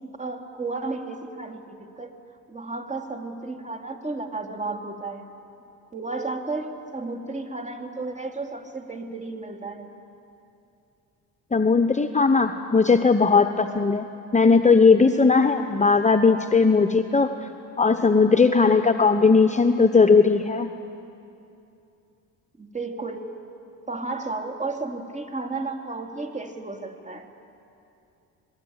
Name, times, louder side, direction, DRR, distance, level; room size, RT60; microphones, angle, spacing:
voice 1, 0.2-2.1 2.5-5.2 5.9-9.9 22.6-23.3 23.9-27.3, right 3 dB, 20° right, 3 dB, 3.2 m, -33 dB
voice 2, 11.5-14.0 14.3-17.5 17.8-20.7, left 4 dB, 20° left, 7 dB, 1.0 m, -18 dB
26.0 x 20.0 x 9.0 m, 2.7 s
supercardioid pair, 70°, 39 cm